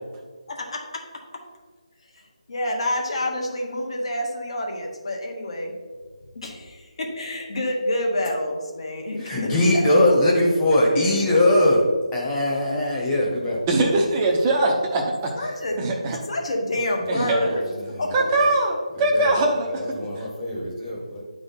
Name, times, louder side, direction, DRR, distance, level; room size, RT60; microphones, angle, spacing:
voice 1, 0.5-0.8 2.1-5.7 6.3-10.0 15.4-16.0 16.2-18.2, left 1 dB, 50° left, 1 dB, 1.4 m, -28 dB
voice 2, 9.2-13.6 17.9-18.0 18.9-21.2, left 1 dB, 10° left, -4 dB, 1.2 m, -21 dB
voice 3, 13.7-15.3 15.8-16.2 17.1-17.4 18.1-19.8 20.2-20.3, right 2 dB, 20° right, 0 dB, 0.8 m, -21 dB
9.5 x 3.8 x 4.2 m, 1.5 s
figure-of-eight pair, 155°, 4 cm